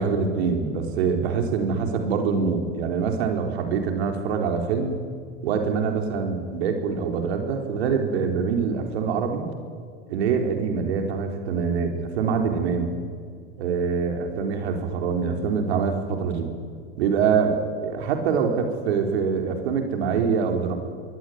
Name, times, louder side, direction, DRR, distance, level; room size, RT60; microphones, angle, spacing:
voice 1, 0.0-4.9 5.4-9.5 10.1-13.0 13.6-16.5 17.0-20.7, right 5 dB, 65° right, 4 dB, 4.5 m, -24 dB
26.0 x 22.5 x 9.6 m, 2.2 s
hypercardioid pair, 90°, 34 cm